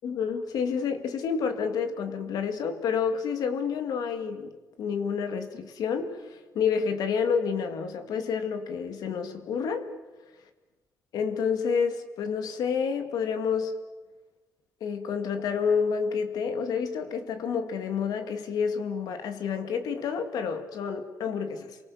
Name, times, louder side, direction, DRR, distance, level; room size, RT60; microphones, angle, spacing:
voice 1, 0.0-4.5 4.8-9.9 11.1-13.7 14.8-21.8, left 6 dB, 85° left, 8 dB, 2.2 m, -29 dB
28.5 x 23.5 x 7.1 m, 1.2 s
cardioid pair, 140°, 6 cm